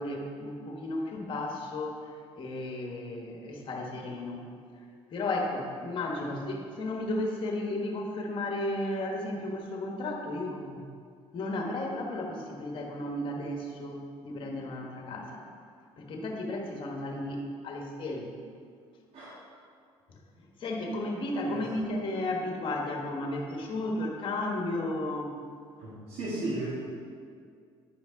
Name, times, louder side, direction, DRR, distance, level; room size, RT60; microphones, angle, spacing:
voice 1, 0.0-4.4 5.1-10.8 11.3-15.5 16.0-18.4 20.1-25.4, left 1 dB, 55° left, 1 dB, 1.4 m, -34 dB
voice 2, 25.8-26.7, right 2 dB, 75° right, -7 dB, 1.8 m, -35 dB
10.5 x 5.1 x 4.0 m, 2.2 s
cardioid pair, 100°, 11 cm